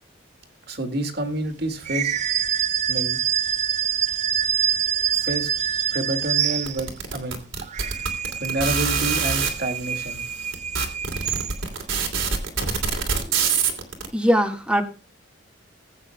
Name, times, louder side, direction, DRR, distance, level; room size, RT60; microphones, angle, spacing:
voice 1, 0.7-2.2 2.9-3.2 5.1-5.5 5.9-7.4 8.4-10.3, right 1 dB, 50° right, 5 dB, 2.0 m, -28 dB
sound 1, 1.8-7.1 7.6-11.8, right 9 dB, 35° right, 0.4 m, -26 dB
sound 2, 6.7-9.5 10.2-10.3 10.5-14.1, right 6 dB, 80° right, 2.8 m, -24 dB
voice 2, 13.2-13.5 14.1-14.8, equal, 5° right, 3 dB, 1.6 m, -22 dB
20.5 x 8.7 x 2.2 m, 0.34 s
head